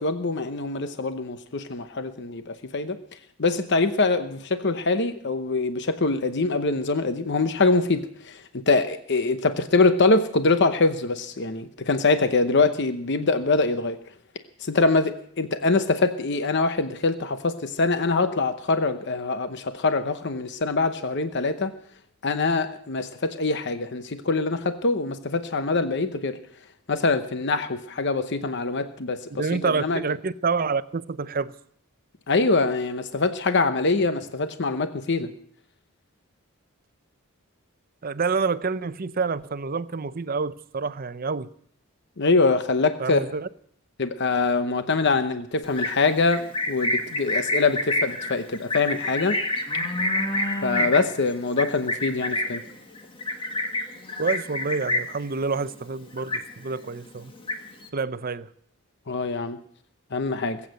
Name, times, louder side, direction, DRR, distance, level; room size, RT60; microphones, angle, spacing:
voice 1, 0.0-3.0 3.4-8.0 8.3-14.0 14.7-21.7 22.2-26.4 26.9-30.0 32.3-35.3 42.2-43.2 44.0-49.4 50.6-52.6 59.1-59.6 60.1-60.6, left 3 dB, 55° left, 0.9 m, -24 dB
voice 2, 29.3-31.5 38.0-41.5 43.0-43.5 54.2-57.3 57.9-58.5, right 4 dB, 40° right, 0.7 m, -28 dB
Livestock farm animals working animals, 45.6-55.3 55.6-55.9 56.2-56.9 57.2-57.9, left 1 dB, 25° left, 1.5 m, -28 dB
20.5 x 8.5 x 7.7 m
head